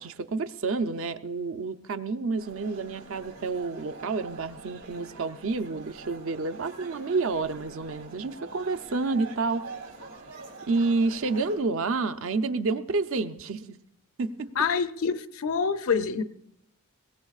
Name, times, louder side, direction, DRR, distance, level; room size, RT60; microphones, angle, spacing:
voice 1, 0.0-9.7 10.7-13.8 14.2-14.5, right 3 dB, 60° right, 0.6 m, -29 dB
sound 1, 2.4-11.6, right 3 dB, 80° right, 3.1 m, -45 dB
voice 2, 14.6-16.2, left 5 dB, 65° left, 0.6 m, -26 dB
21.5 x 17.5 x 2.4 m
head